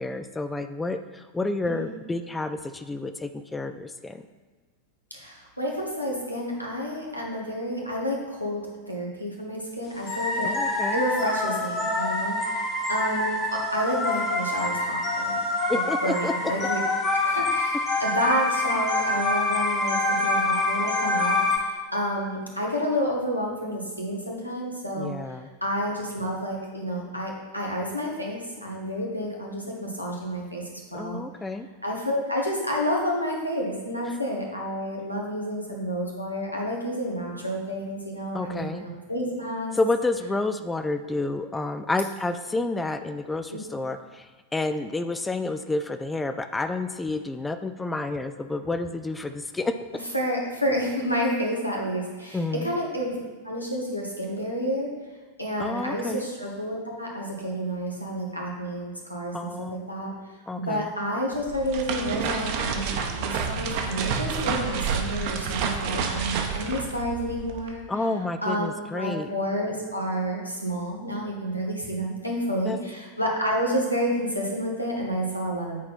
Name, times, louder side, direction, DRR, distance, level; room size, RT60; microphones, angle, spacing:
voice 1, 0.0-4.2 10.4-11.0 15.7-16.3 25.0-25.5 30.9-31.7 38.3-38.8 39.7-49.7 52.3-52.7 55.6-56.3 59.3-59.8 60.5-60.9 67.9-69.3 72.7-72.8, left 2 dB, 10° left, 9 dB, 0.3 m, -29 dB
voice 2, 1.7-2.0 5.1-15.4 16.0-16.8 17.2-25.1 25.6-31.2 31.8-39.7 43.5-43.6 50.1-53.2 53.4-54.9 55.4-60.1 60.6-67.8 68.4-75.8, equal, 90° left, -2 dB, 1.4 m, -30 dB
sound 1, 10.1-21.6, left 2 dB, 25° left, 1.2 m, -26 dB
sound 2, 61.3-67.7, right 6 dB, 45° right, 0.8 m, -29 dB
8.2 x 4.3 x 4.1 m, 1.4 s
figure-of-eight pair, 90°, 0 cm